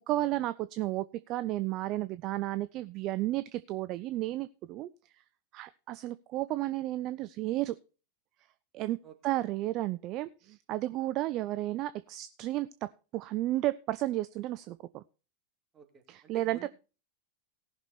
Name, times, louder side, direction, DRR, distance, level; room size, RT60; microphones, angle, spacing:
voice 1, 0.1-4.9 5.5-7.7 8.7-9.0 9.2-12.7 13.1-15.0 16.1-16.7, right 16 dB, 40° right, 14 dB, 0.5 m, -32 dB
voice 2, 15.7-16.7, right 6 dB, 25° right, 4 dB, 2.5 m, -51 dB
18.0 x 6.1 x 4.2 m, 0.34 s
figure-of-eight pair, 90°, 0 cm